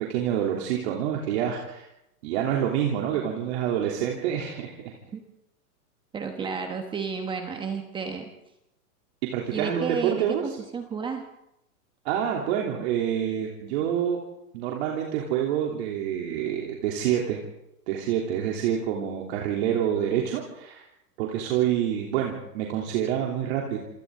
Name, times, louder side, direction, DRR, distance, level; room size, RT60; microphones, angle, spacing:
voice 1, 0.1-1.8 2.2-4.9 9.2-10.6 12.0-14.2 14.5-17.4 17.9-20.9 21.2-23.8, right 9 dB, 45° right, -1 dB, 3.3 m, -27 dB
voice 2, 6.1-8.3 9.5-11.3, right 5 dB, 10° right, 5 dB, 1.1 m, -32 dB
28.0 x 27.0 x 3.8 m, 0.83 s
hypercardioid pair, 150°, 47 cm